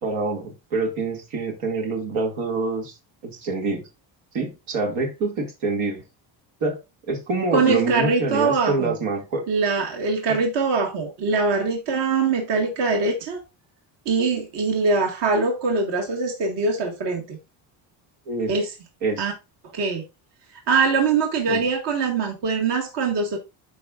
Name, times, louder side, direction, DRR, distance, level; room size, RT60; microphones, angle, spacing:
voice 1, 0.0-3.0 3.2-3.9 4.3-6.0 6.6-6.8 7.1-9.4 18.3-18.5 19.0-19.3 21.5-21.6, right 3 dB, 90° right, 2.4 m, -26 dB
voice 2, 7.5-8.9 9.5-13.4 14.1-17.4 18.5-18.7 19.2-19.3 19.7-20.0 20.7-23.4, right 4 dB, 60° right, 1.9 m, -22 dB
12.5 x 4.8 x 2.5 m
cardioid pair, 105°, 47 cm